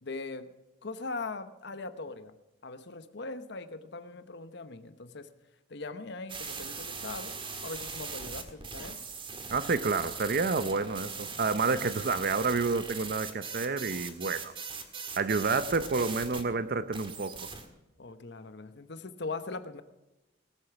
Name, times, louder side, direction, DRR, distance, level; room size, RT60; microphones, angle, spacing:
voice 1, 0.0-0.5 0.8-2.3 2.6-5.3 5.7-7.3 7.6-9.0 18.0-19.8, left 3 dB, 60° left, 11 dB, 1.0 m, -40 dB
sound 1, 6.3-16.4 16.9-17.7, right 5 dB, 25° right, 1.7 m, -40 dB
voice 2, 9.5-14.5 15.2-17.5, right 4 dB, 50° right, 13 dB, 0.6 m, -29 dB
19.0 x 8.1 x 5.9 m, 0.99 s
head